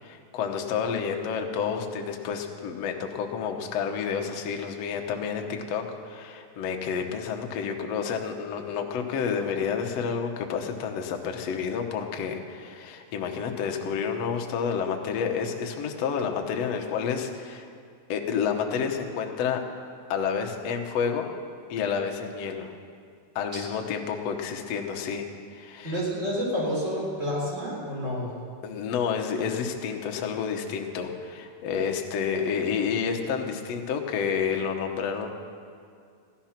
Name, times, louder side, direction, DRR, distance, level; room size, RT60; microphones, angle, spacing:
voice 1, 0.0-17.7 18.1-19.6 20.1-21.3 21.7-22.7 23.3-25.3 25.5-26.0 28.6-35.3, left 6 dB, 85° left, 3 dB, 1.4 m, -29 dB
voice 2, 25.8-28.3, equal, 20° right, -4 dB, 3.8 m, -29 dB
16.0 x 12.5 x 5.9 m, 2.2 s
omnidirectional pair, 4.7 m